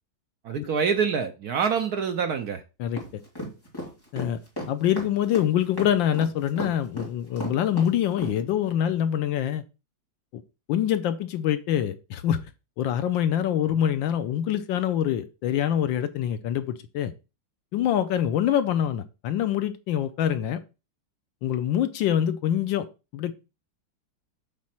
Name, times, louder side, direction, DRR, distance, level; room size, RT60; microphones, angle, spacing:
voice 1, 0.4-2.6, right 6 dB, 65° right, 1.0 m, -26 dB
voice 2, 2.8-3.2 4.1-4.4 4.7-9.6 10.3-10.4 10.7-12.4 12.8-17.1 17.7-20.6 21.4-22.9 23.1-23.3, left 10 dB, 75° left, 1.3 m, -25 dB
sound 1, 3.0-8.4, equal, 10° left, 2.2 m, -34 dB
7.5 x 3.7 x 5.9 m
omnidirectional pair, 2.2 m